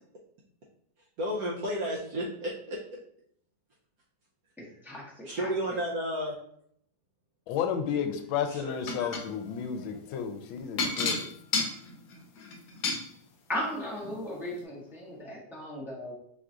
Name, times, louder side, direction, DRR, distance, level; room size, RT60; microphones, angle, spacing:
voice 1, 1.2-2.8 5.2-6.3 8.5-8.7 9.0-9.1, equal, 70° right, 0.9 m, -32 dB
voice 2, 4.6-5.8 13.5-16.1, left 1 dB, ahead, 0.5 m, -37 dB
voice 3, 7.5-11.2, left 8 dB, 85° left, 1.3 m, -32 dB
sound 1, 8.9-9.3 10.8-13.0 14.0-14.1 14.6-14.7, left 4 dB, 65° left, 1.2 m, -30 dB
4.7 x 2.4 x 3.7 m
omnidirectional pair, 2.1 m